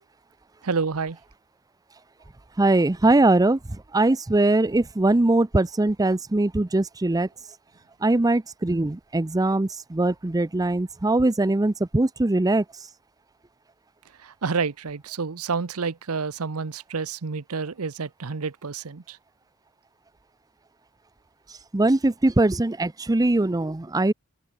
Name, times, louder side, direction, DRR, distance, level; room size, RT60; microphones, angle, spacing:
voice 1, 0.6-1.2 14.2-19.2, right 5 dB, 75° right, 0.8 m, -29 dB
voice 2, 2.6-3.6 3.9-7.3 8.0-12.6 21.7-24.1, right 2 dB, 15° right, 0.5 m, -21 dB
open air
head